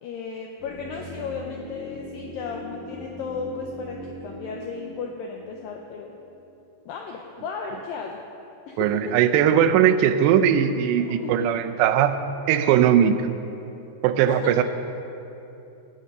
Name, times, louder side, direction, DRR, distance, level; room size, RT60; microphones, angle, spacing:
voice 1, 0.0-6.1 6.9-8.2 8.7-9.2 11.0-11.5 14.3-14.5, left 5 dB, 90° left, 1 dB, 2.0 m, -35 dB
sound 1, 0.6-6.6 6.9-7.0, equal, 55° right, 2.6 m, -41 dB
voice 2, 8.8-12.2 12.5-13.3 14.0-14.6, right 9 dB, 85° right, 10 dB, 2.8 m, -19 dB
17.5 x 7.8 x 5.4 m, 2.9 s
omnidirectional pair, 4.9 m